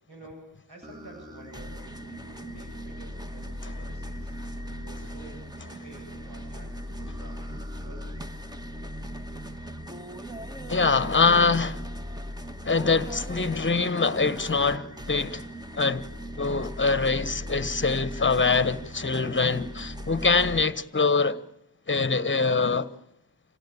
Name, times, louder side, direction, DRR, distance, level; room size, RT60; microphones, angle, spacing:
voice 1, 0.1-8.3, right 1 dB, 65° right, 7.8 m, -50 dB
sound 1, 0.8-20.6, equal, 10° right, 1.6 m, -38 dB
voice 2, 10.7-11.8 12.6-15.5 15.7-16.1 16.4-21.4 21.9-22.9, left 4 dB, 25° left, 1.3 m, -24 dB
27.0 x 17.0 x 8.7 m
cardioid pair, 65°, 42 cm